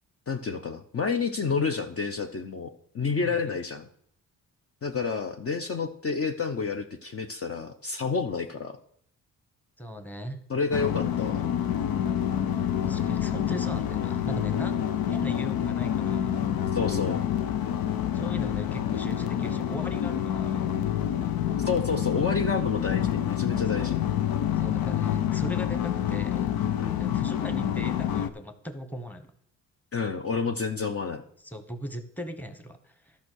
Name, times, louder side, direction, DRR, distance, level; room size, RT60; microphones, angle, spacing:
voice 1, 0.3-2.7 2.9-3.8 4.8-8.8 10.5-11.4 16.7-17.2 21.6-24.0 26.8-27.0 29.9-31.2, left 5 dB, 40° left, 6 dB, 0.8 m, -29 dB
voice 2, 3.2-3.6 9.8-10.5 12.8-14.8 15.1-16.5 18.1-20.7 23.7-23.8 24.6-26.5 27.0-29.3 31.4-33.2, equal, 5° left, 8 dB, 1.2 m, -39 dB
sound 1, 10.7-28.3, left 10 dB, 80° left, 0.7 m, -27 dB
11.5 x 5.6 x 6.3 m, 0.66 s
cardioid pair, 80°, 35 cm